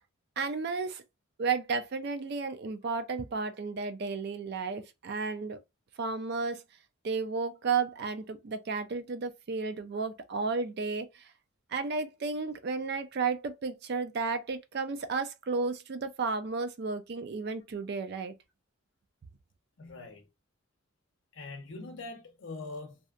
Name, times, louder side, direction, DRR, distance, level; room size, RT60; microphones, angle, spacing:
voice 1, 0.4-1.0 1.4-5.6 6.0-6.6 7.0-11.3 11.7-18.3, right 4 dB, 50° right, 0.4 m, -33 dB
voice 2, 19.8-20.2 21.3-23.0, left 3 dB, 55° left, 0.6 m, -42 dB
2.7 x 2.1 x 2.4 m
head